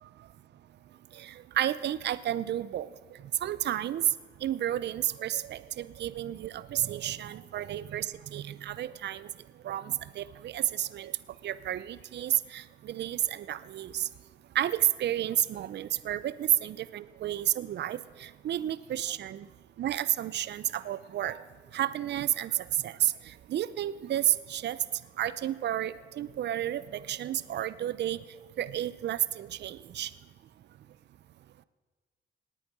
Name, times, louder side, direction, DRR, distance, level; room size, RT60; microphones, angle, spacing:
voice 1, 1.1-2.9 3.4-4.1 4.4-9.3 9.6-11.2 11.4-14.1 14.5-19.5 19.8-21.4 21.7-24.8 25.2-28.2 28.6-30.1, right 12 dB, 60° right, 17 dB, 0.6 m, -31 dB
18.5 x 9.1 x 6.0 m, 1.5 s
cardioid pair, 90°, 20 cm